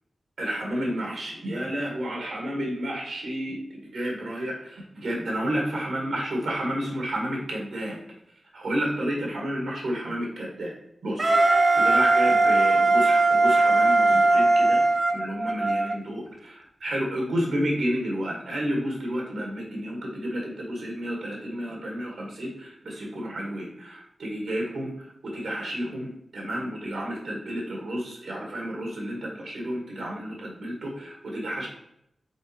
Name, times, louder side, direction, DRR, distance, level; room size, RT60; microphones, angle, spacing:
voice 1, 0.4-8.0 8.5-10.7 11.0-14.8 15.1-24.9 25.2-31.7, equal, 90° right, -1 dB, 2.0 m, -31 dB
Wind instrument woodwind instrument, 11.2-16.0, right 2 dB, 50° right, 0.8 m, -19 dB
5.2 x 4.3 x 4.4 m, 0.75 s
cardioid pair, 50°, 0 cm